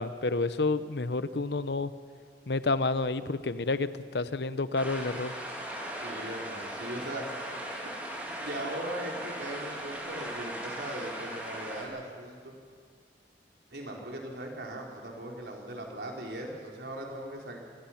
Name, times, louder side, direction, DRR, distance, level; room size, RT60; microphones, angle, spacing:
voice 1, 0.0-1.9 2.5-5.3, left 3 dB, 75° left, 13 dB, 0.8 m, -29 dB
sound 1, 4.8-11.8, right 1 dB, 10° right, 3.4 m, -38 dB
voice 2, 6.0-7.3 8.4-12.6 13.7-17.6, right 1 dB, 75° right, -1 dB, 4.1 m, -39 dB
26.0 x 19.0 x 5.9 m, 2.1 s
head